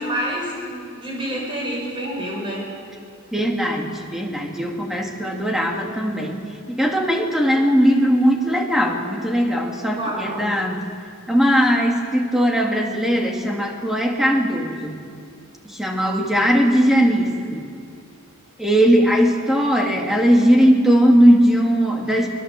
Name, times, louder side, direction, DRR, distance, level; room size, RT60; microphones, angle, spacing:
voice 1, 0.0-2.7 10.0-10.5 22.1-22.2, equal, 25° right, -3 dB, 6.7 m, -28 dB
voice 2, 3.3-6.4 6.7-10.9 11.3-15.0 15.6-17.7 18.6-22.3, equal, ahead, 1 dB, 2.3 m, -19 dB
22.0 x 22.0 x 7.6 m, 2.3 s
head